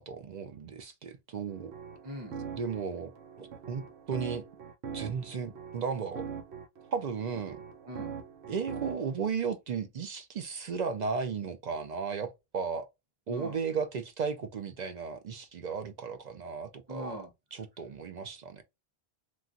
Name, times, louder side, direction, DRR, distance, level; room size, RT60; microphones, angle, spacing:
voice 1, 0.0-1.7 2.6-3.1 3.4-4.4 4.9-6.3 6.9-7.6 8.5-12.9 13.3-17.2 17.5-18.6, right 5 dB, 55° right, 0.5 m, -35 dB
sound 1, 1.5-9.2, right 6 dB, 85° right, 1.0 m, -43 dB
voice 2, 2.0-2.4 7.8-8.1 13.3-13.6 16.9-17.3, equal, 25° right, 0.8 m, -41 dB
3.2 x 2.4 x 2.5 m
omnidirectional pair, 1.1 m